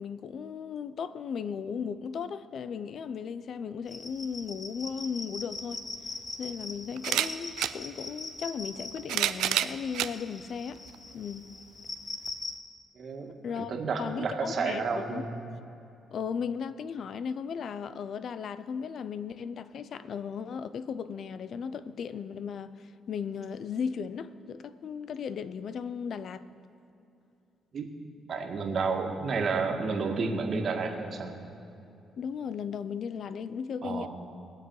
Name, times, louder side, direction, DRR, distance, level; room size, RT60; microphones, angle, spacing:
voice 1, 0.0-5.8 6.4-10.8 11.1-11.5 13.4-13.7 14.0-15.2 16.1-26.5 32.2-34.1, left 6 dB, 60° left, 0.5 m, -36 dB
sound 1, 3.9-12.6, left 3 dB, 35° left, 1.1 m, -41 dB
sound 2, 5.6-5.7 7.0-7.8 8.8-10.1 10.9-11.0 12.3-12.4, right 12 dB, 85° right, 0.4 m, -28 dB
voice 2, 13.0-15.3 27.7-27.9 28.3-31.3 33.8-34.1, right 4 dB, 55° right, 1.7 m, -31 dB
21.5 x 7.7 x 4.8 m
cardioid pair, 90°, 0 cm